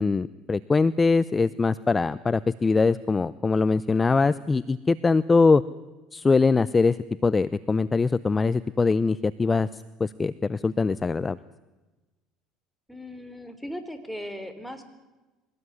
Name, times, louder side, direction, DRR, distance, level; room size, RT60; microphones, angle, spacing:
voice 1, 0.0-5.6 6.1-7.0 7.2-11.4, left 4 dB, 25° left, 17 dB, 0.7 m, -22 dB
voice 2, 12.9-14.8, equal, ahead, 10 dB, 4.0 m, -38 dB
23.5 x 18.5 x 9.7 m, 1.2 s
supercardioid pair, 80°, 0 cm